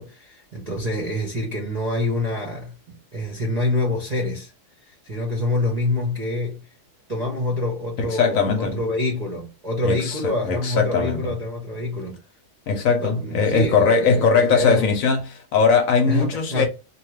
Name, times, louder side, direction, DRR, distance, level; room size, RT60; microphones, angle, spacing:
voice 1, 0.0-4.5 4.8-6.6 7.1-12.2 13.0-14.9 16.0-16.6, left 2 dB, 40° right, 0.6 m, -26 dB
voice 2, 8.0-8.8 9.8-10.2 10.5-11.3 12.7-16.7, left 5 dB, 65° left, 1.0 m, -20 dB
2.7 x 2.3 x 3.1 m
omnidirectional pair, 1.7 m